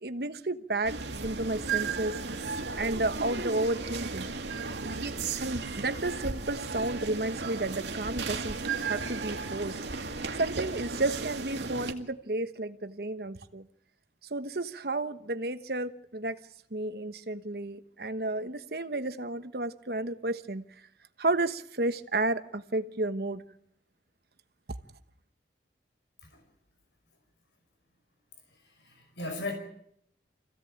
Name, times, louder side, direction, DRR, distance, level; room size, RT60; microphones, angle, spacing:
voice 1, 0.0-2.2 2.7-4.3 5.3-13.7 14.3-16.4 16.7-20.6 21.2-23.4, right 2 dB, 55° right, 10 dB, 1.2 m, -32 dB
sound 1, 0.8-11.9, right 4 dB, 75° right, 2.1 m, -35 dB
voice 2, 28.5-29.5, left 2 dB, 70° left, 5 dB, 5.1 m, -38 dB
25.0 x 16.0 x 8.7 m, 0.72 s
head